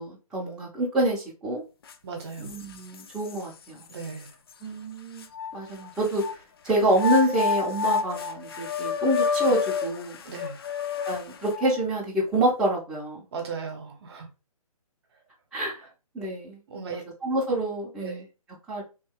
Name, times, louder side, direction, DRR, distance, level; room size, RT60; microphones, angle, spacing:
voice 1, 0.0-1.6 2.4-3.8 4.6-5.3 5.5-6.2 6.6-10.2 11.0-13.2 15.5-15.8 16.1-16.6 16.9-18.2 18.7-18.8, right 1 dB, 5° right, 0.9 m, -27 dB
sound 1, 1.9-2.0 2.5-3.4 4.0-4.1 5.2-6.3 6.9-11.8, left 6 dB, 40° left, 0.4 m, -29 dB
voice 2, 2.0-2.5 3.9-4.3 10.2-10.7 13.3-14.3 16.7-17.0 18.0-18.2, right 5 dB, 45° right, 1.1 m, -36 dB
3.2 x 2.7 x 3.8 m
hypercardioid pair, 150°, 19 cm